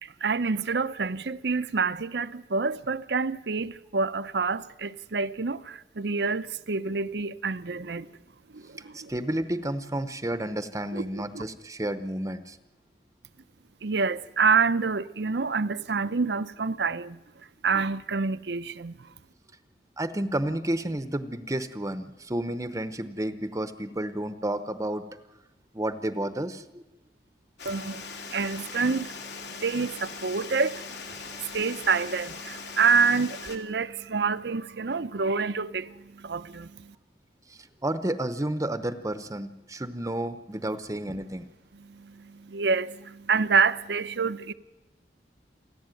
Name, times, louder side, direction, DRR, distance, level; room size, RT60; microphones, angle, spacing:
voice 1, 0.0-8.1 8.5-9.1 10.9-11.4 13.8-17.2 17.6-19.1 27.6-37.0 41.7-44.5, right 4 dB, 70° right, 0.7 m, -28 dB
voice 2, 8.9-12.6 20.0-25.0 25.7-26.8 37.5-41.5, right 1 dB, 20° right, 0.8 m, -31 dB
Water, 27.6-33.6, left 5 dB, 70° left, 2.7 m, -40 dB
28.5 x 11.5 x 9.1 m
head